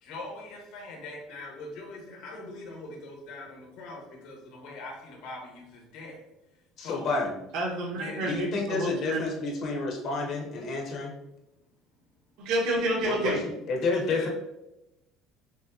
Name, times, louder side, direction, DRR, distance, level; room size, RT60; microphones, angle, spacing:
voice 1, 0.0-6.2 6.8-7.3 7.9-8.2 14.1-14.3, left 2 dB, 65° left, -1 dB, 1.2 m, -42 dB
voice 2, 6.8-7.3 8.2-11.2 13.0-13.4 13.7-14.3, left 3 dB, 40° left, 0 dB, 0.9 m, -29 dB
voice 3, 7.5-9.2 12.4-13.4, right 1 dB, 70° right, -4 dB, 1.1 m, -29 dB
6.0 x 2.2 x 2.7 m, 0.93 s
cardioid pair, 160°, 0 cm